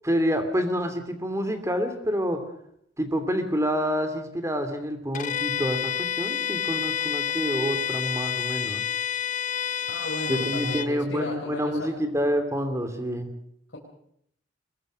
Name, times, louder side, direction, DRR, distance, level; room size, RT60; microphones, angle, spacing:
voice 1, 0.0-2.4 3.0-8.8 10.3-13.3, equal, 15° right, 8 dB, 2.7 m, -27 dB
Bowed string instrument, 5.1-10.9, left 8 dB, 45° left, 0.8 m, -29 dB
voice 2, 9.9-11.9, left 1 dB, 90° left, -3 dB, 4.3 m, -34 dB
22.5 x 21.0 x 6.3 m, 0.69 s
head